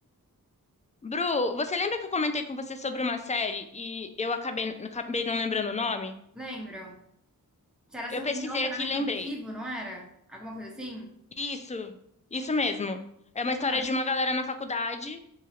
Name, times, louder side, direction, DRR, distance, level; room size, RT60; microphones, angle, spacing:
voice 1, 1.0-6.2 8.1-9.3 11.4-12.0 12.3-13.0 13.3-15.2, left 3 dB, 20° left, 8 dB, 0.3 m, -30 dB
voice 2, 6.4-7.0 7.9-11.1 13.6-13.8, equal, ahead, 0 dB, 0.7 m, -38 dB
2.9 x 2.4 x 4.2 m, 0.72 s
wide cardioid pair, 60°, 36 cm